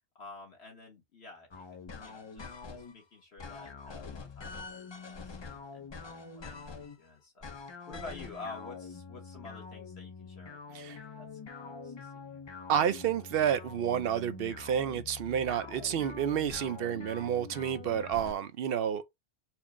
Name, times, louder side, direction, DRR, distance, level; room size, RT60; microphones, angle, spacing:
voice 1, 0.1-7.4 7.9-12.4, left 3 dB, 70° left, 1.4 m, -50 dB
sound 1, 1.5-3.0 3.4-7.0 7.4-18.3, left 4 dB, 40° left, 0.4 m, -45 dB
voice 2, 12.7-19.0, right 9 dB, 65° right, 0.7 m, -30 dB
4.4 x 2.0 x 3.5 m
omnidirectional pair, 1.1 m